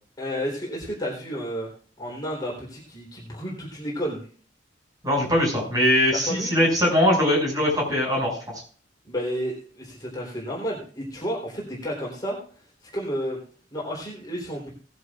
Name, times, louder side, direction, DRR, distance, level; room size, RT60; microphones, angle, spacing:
voice 1, 0.2-1.7 2.0-4.2 6.1-6.6 9.1-12.4 12.9-13.4 13.7-14.7, equal, 20° left, -4 dB, 3.6 m, -31 dB
voice 2, 5.0-8.4, left 1 dB, 20° right, -2 dB, 5.8 m, -21 dB
18.5 x 11.0 x 2.5 m, 0.42 s
head